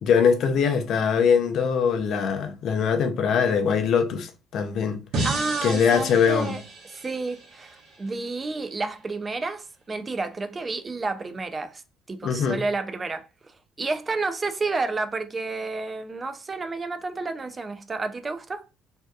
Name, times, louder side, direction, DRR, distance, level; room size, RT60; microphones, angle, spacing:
voice 1, 0.0-5.0 5.6-6.6 12.2-12.6, left 6 dB, 60° left, 0.4 m, -22 dB
sound 1, 5.1-8.3, right 2 dB, 70° right, 0.8 m, -33 dB
voice 2, 5.2-6.6 6.9-11.8 12.1-18.6, right 3 dB, 25° right, 0.3 m, -30 dB
2.6 x 2.2 x 2.2 m
cardioid pair, 95°, 0 cm